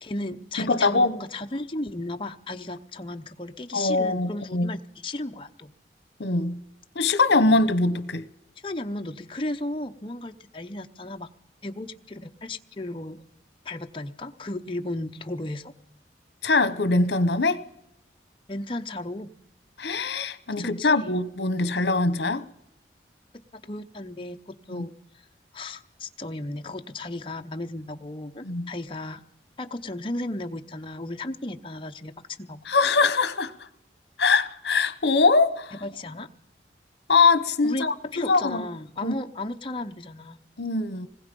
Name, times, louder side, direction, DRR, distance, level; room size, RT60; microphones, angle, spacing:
voice 1, 0.0-5.7 8.6-11.3 11.6-13.2 13.6-15.7 18.5-19.3 20.6-21.1 23.5-24.9 25.5-29.2 29.6-32.6 35.8-36.3 37.6-40.4, left 2 dB, 30° left, 0.7 m, -34 dB
voice 2, 0.6-1.2 3.7-4.7 6.2-6.6 6.9-8.2 16.4-17.6 19.8-22.5 24.7-24.8 28.4-28.7 32.7-33.5 34.2-35.7 37.1-38.6 39.0-39.1 40.6-41.1, left 3 dB, 70° left, 1.0 m, -22 dB
25.5 x 19.5 x 5.3 m
head